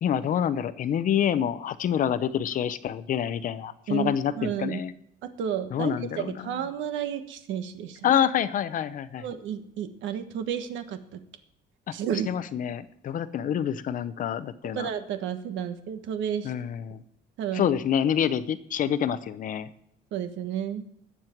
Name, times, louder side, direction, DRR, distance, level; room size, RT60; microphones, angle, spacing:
voice 1, 0.0-4.9 5.7-6.6 8.0-9.2 12.3-14.9 16.4-17.0 17.5-19.7, left 9 dB, 45° left, 14 dB, 0.7 m, -27 dB
voice 2, 3.9-4.8 5.2-8.1 9.2-11.2 11.9-12.3 14.7-16.5 17.4-17.7 20.1-20.8, right 9 dB, 85° right, 8 dB, 1.4 m, -32 dB
19.5 x 7.5 x 4.5 m, 0.74 s
cardioid pair, 165°, 19 cm